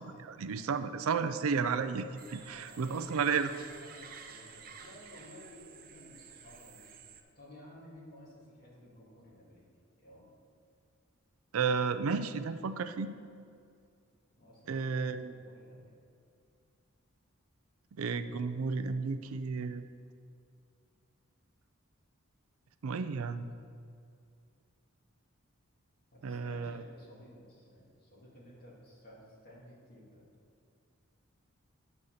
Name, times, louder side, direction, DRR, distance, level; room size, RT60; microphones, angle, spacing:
voice 1, 0.0-3.5 11.5-13.1 14.7-15.3 18.0-19.8 22.8-23.5 26.2-26.8, right 5 dB, 80° right, 11 dB, 0.4 m, -32 dB
sound 1, 2.2-7.2, right 6 dB, 45° right, 0.6 m, -52 dB
voice 2, 2.4-3.1 3.5-6.9 7.4-9.7 10.0-10.3 14.4-15.9 26.1-30.2, equal, 45° left, -5 dB, 2.4 m, -55 dB
9.9 x 4.1 x 6.5 m, 2.4 s
head